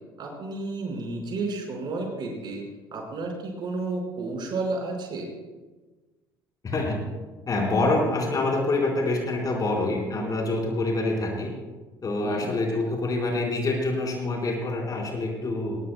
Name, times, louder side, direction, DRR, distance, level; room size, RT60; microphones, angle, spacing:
voice 1, 0.2-2.6 2.9-5.3 12.2-12.5, right 3 dB, 40° right, 0 dB, 5.0 m, -31 dB
voice 2, 6.6-7.0 7.5-11.5 12.0-15.8, left 2 dB, 35° left, 0 dB, 4.3 m, -26 dB
21.0 x 21.0 x 2.2 m, 1.2 s
figure-of-eight pair, 55°, 12 cm